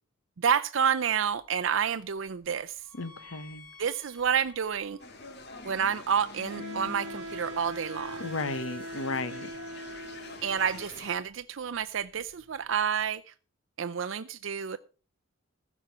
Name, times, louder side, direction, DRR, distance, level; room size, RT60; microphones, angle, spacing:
voice 1, 0.4-2.7 3.8-5.0 5.6-8.2 10.4-13.2 13.8-14.8, right 7 dB, 65° right, 0.5 m, -29 dB
sound 1, 0.9-13.1, left 2 dB, 5° left, 3.9 m, -56 dB
voice 2, 2.9-3.7 8.2-9.5 10.0-10.3, left 3 dB, 80° left, 1.0 m, -35 dB
sound 2, 5.0-11.2, left 4 dB, 55° left, 1.6 m, -46 dB
Wind instrument woodwind instrument, 6.5-10.6, right 1 dB, 90° right, 1.0 m, -41 dB
15.0 x 6.2 x 5.9 m
head